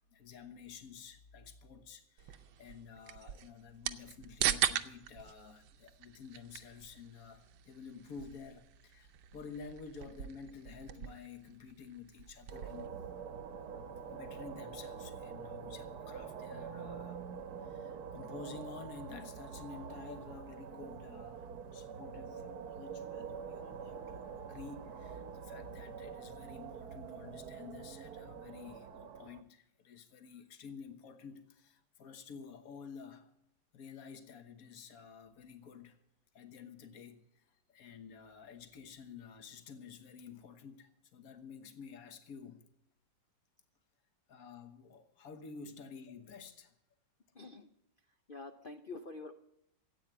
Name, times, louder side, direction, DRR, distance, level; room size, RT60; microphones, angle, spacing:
voice 1, 0.1-12.9 14.1-17.2 17.6-33.3 33.7-36.0 36.3-42.7 44.3-46.7, left 5 dB, 55° left, 1.6 m, -51 dB
sound 1, 2.2-12.9, right 10 dB, 85° right, 1.5 m, -40 dB
sound 2, 12.5-29.4, right 6 dB, 65° right, 1.3 m, -46 dB
voice 2, 47.3-47.7 48.3-49.3, left 3 dB, 75° left, 0.4 m, -46 dB
13.5 x 8.8 x 8.9 m
omnidirectional pair, 1.9 m